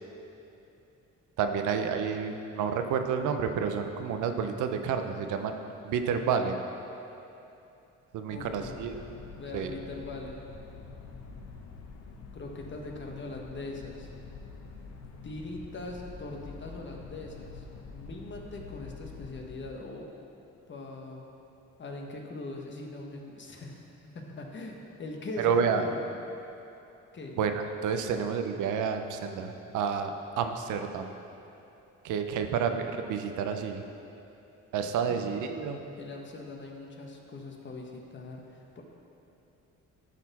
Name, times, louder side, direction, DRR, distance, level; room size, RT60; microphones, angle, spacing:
voice 1, 1.4-5.5 5.8-6.6 8.1-9.0 9.5-9.7 25.4-25.8 27.4-31.1 32.0-33.8 34.7-35.8, right 6 dB, 80° right, 6 dB, 0.6 m, -30 dB
sound 1, 8.3-19.8, left 4 dB, 60° left, 0.8 m, -46 dB
voice 2, 8.3-8.8 9.4-10.4 12.3-14.1 15.2-17.6 17.9-20.1 20.7-21.2 21.8-23.8 24.1-26.0 27.1-27.4 35.0-35.2 36.0-38.8, left 2 dB, 40° left, 0 dB, 1.1 m, -41 dB
11.5 x 4.2 x 4.1 m, 2.9 s
cardioid pair, 90°, 30 cm